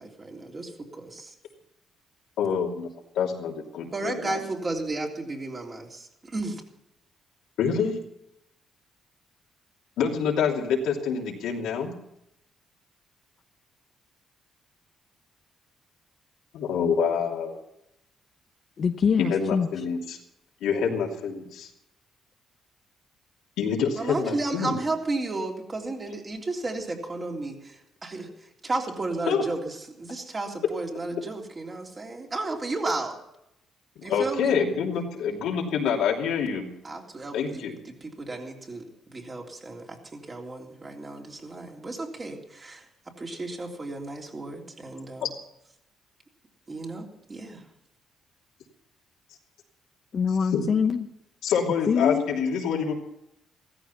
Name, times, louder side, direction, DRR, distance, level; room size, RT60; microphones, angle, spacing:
voice 1, 0.0-1.3 3.9-6.6 24.0-33.2 34.0-34.6 36.8-42.8 43.2-45.3 46.7-47.6, right 2 dB, 30° right, 0 dB, 3.5 m, -33 dB
voice 2, 2.4-2.9 3.1-4.4 7.6-7.9 10.0-11.9 16.5-17.6 19.2-20.2 20.6-21.7 23.6-24.8 29.3-29.4 34.0-36.7 37.3-37.7 45.2-45.3 50.5-50.6 51.4-53.0, left 6 dB, 85° left, 0 dB, 2.9 m, -26 dB
voice 3, 18.8-19.7 50.1-51.1 51.9-52.3, left 6 dB, 50° left, 6 dB, 0.9 m, -24 dB
15.5 x 14.0 x 5.7 m, 0.83 s
cardioid pair, 90°, 0 cm